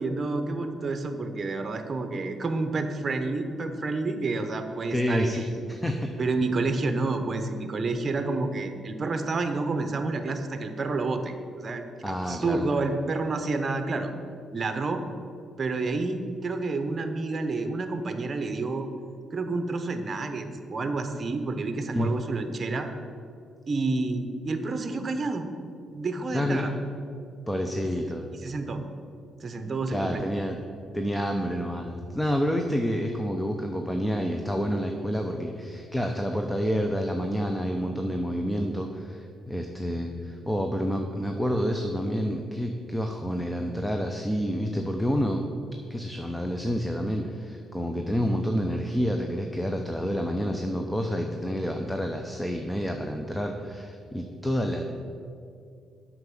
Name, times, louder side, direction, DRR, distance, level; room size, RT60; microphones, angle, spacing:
voice 1, 0.0-5.5 6.2-14.1 14.5-15.0 15.6-18.9 19.3-22.9 23.7-25.5 25.9-26.7 28.4-28.8 29.4-30.2, right 3 dB, 35° right, 7 dB, 0.9 m, -29 dB
voice 2, 4.9-6.1 12.0-12.6 21.9-22.1 26.3-26.7 27.5-28.3 29.9-30.6 30.9-45.4 45.9-54.8, equal, 5° left, 4 dB, 0.7 m, -28 dB
7.9 x 5.9 x 7.0 m, 2.4 s
cardioid pair, 90°, 0 cm